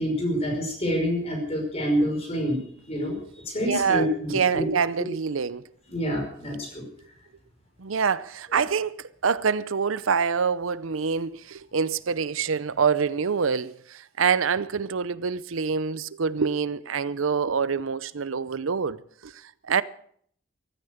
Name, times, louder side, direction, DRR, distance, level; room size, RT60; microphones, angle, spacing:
voice 1, 0.0-3.2 3.5-4.7 5.9-6.8, equal, 30° left, 5.4 m, -27 dB
voice 2, 3.6-5.6 7.8-19.0 19.2-19.8, right 6 dB, 85° right, 0.6 m, -26 dB
15.0 x 13.5 x 6.6 m
head